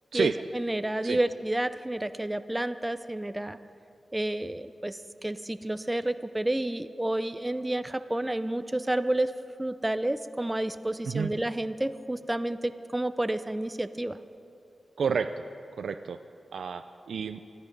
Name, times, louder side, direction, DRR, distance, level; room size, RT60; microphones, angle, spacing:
voice 1, 0.1-3.6 4.1-9.3 9.6-14.2, right 1 dB, 10° right, 11 dB, 0.4 m, -30 dB
voice 2, 15.0-15.3 15.8-16.2 16.5-17.4, right 6 dB, 80° right, 9 dB, 0.4 m, -29 dB
21.0 x 13.0 x 5.2 m, 2.6 s
wide cardioid pair, 135°, 0 cm